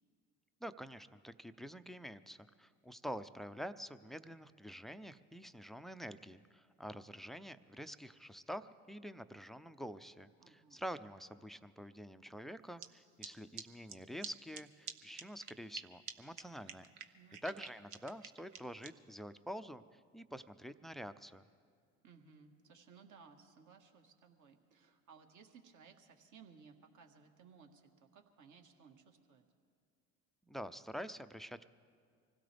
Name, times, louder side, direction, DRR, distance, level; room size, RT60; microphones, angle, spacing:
voice 1, 0.6-16.9 17.4-21.4 30.5-31.7, equal, ahead, 13 dB, 0.4 m, -47 dB
voice 2, 10.4-10.8 17.1-17.6 22.0-29.4, right 6 dB, 50° right, 4 dB, 1.7 m, -61 dB
sound 1, 12.8-12.9 13.2-13.3 13.6-13.7 13.9-14.0 14.2-14.3 14.5-14.6 14.9-15.0 15.2-15.8 16.1-16.2 16.4-16.5 16.7-18.9, right 8 dB, 70° right, 1.0 m, -46 dB
25.0 x 16.5 x 3.4 m, 2.2 s
hypercardioid pair, 70°, 39 cm